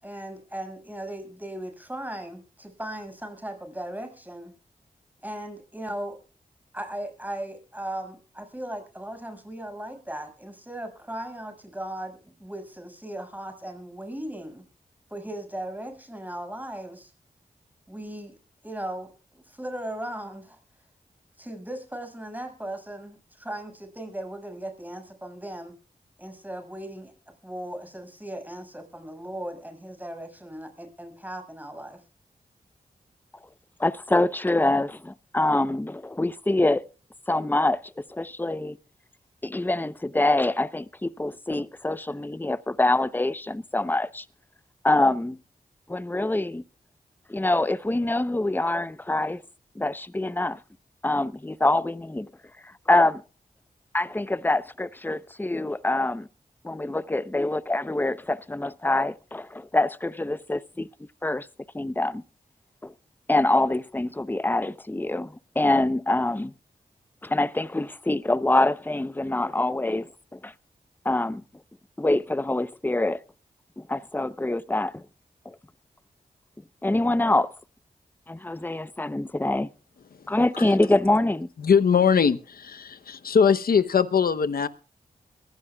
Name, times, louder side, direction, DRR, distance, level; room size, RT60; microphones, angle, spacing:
voice 1, 0.0-4.5 5.2-6.2 6.7-14.6 15.1-17.1 17.9-18.3 18.6-20.6 21.4-25.7 26.2-27.1 27.4-32.0, right 1 dB, 10° right, 6.1 m, -37 dB
voice 2, 33.8-36.9 37.3-37.8 38.1-38.8 39.4-44.2 44.8-45.4 45.9-46.6 47.3-49.4 49.8-50.6 51.0-52.3 52.6-53.2 53.9-56.3 56.6-60.9 61.2-61.5 61.7-62.2 62.8-62.9 63.3-66.5 67.2-70.5 71.0-71.4 72.0-73.2 73.8-75.0 75.5-75.6 76.8-77.5 78.3-79.7 80.3-81.5, left 2 dB, 10° left, 0.8 m, -25 dB
voice 3, 81.6-84.7, left 6 dB, 75° left, 0.9 m, -21 dB
22.5 x 15.5 x 2.4 m
cardioid pair, 45°, 16 cm